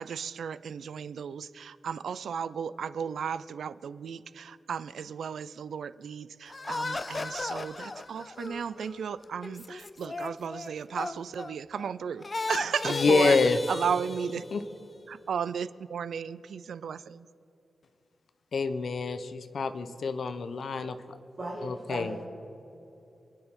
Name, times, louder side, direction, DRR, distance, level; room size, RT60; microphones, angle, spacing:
voice 1, 0.0-13.4 13.7-14.4 15.1-17.2, right 7 dB, 90° right, 16 dB, 0.4 m, -34 dB
sound 1, 6.5-11.9 12.2-14.7, left 3 dB, 25° left, 0.4 m, -36 dB
voice 2, 12.8-13.6 14.5-14.6 18.5-21.0 21.6-22.2, left 4 dB, 60° left, 10 dB, 0.8 m, -27 dB
voice 3, 21.4-22.3, right 1 dB, 35° right, -10 dB, 3.8 m, -37 dB
27.0 x 9.8 x 3.7 m, 2.9 s
wide cardioid pair, 155°, 0 cm